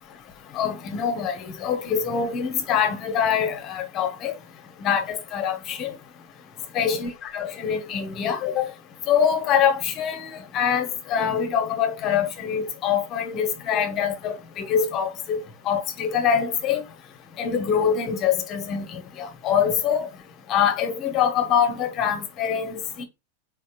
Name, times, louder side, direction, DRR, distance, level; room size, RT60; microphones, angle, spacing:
voice 1, 0.5-4.3 4.8-5.9 6.7-8.7 9.1-16.8 17.4-20.1 20.5-23.0, left 7 dB, 35° left, 1.0 m, -24 dB
4.3 x 4.1 x 2.4 m
figure-of-eight pair, 90°, 0 cm